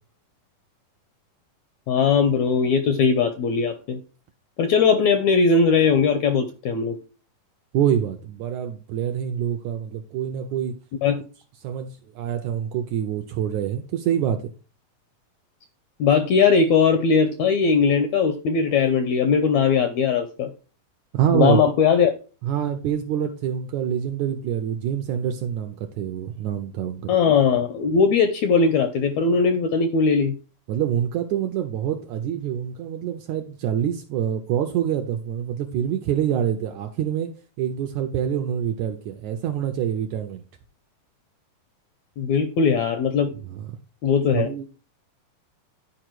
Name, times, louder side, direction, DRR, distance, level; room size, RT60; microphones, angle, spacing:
voice 1, 1.9-4.0 4.6-7.0 11.0-11.2 16.0-20.5 21.3-22.1 27.1-30.3 42.2-43.3 44.0-44.5, left 5 dB, 75° left, 1.6 m, -19 dB
voice 2, 7.7-10.8 11.6-14.5 21.1-21.6 22.4-27.1 30.7-40.4 43.4-43.7 44.3-44.7, right 9 dB, 80° right, 1.7 m, -26 dB
11.0 x 5.0 x 4.5 m
omnidirectional pair, 4.0 m